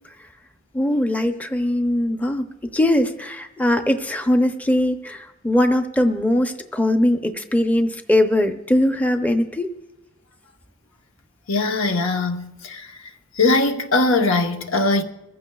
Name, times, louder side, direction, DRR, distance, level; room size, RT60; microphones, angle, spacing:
voice 1, 0.7-9.7, left 1 dB, 10° left, 0.6 m, -21 dB
voice 2, 11.5-12.9 13.3-15.0, left 3 dB, 85° left, 1.0 m, -20 dB
24.0 x 15.0 x 2.3 m
head